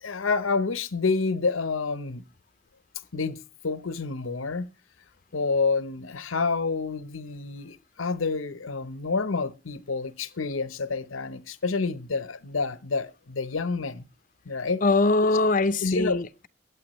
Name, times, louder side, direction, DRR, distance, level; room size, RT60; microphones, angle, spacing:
voice 1, 0.0-2.2 3.1-4.7 5.3-14.1 14.5-14.8 15.8-16.2, left 4 dB, 85° left, 0.9 m, -28 dB
voice 2, 14.8-16.5, left 3 dB, 40° left, 0.6 m, -22 dB
22.5 x 8.3 x 3.1 m
head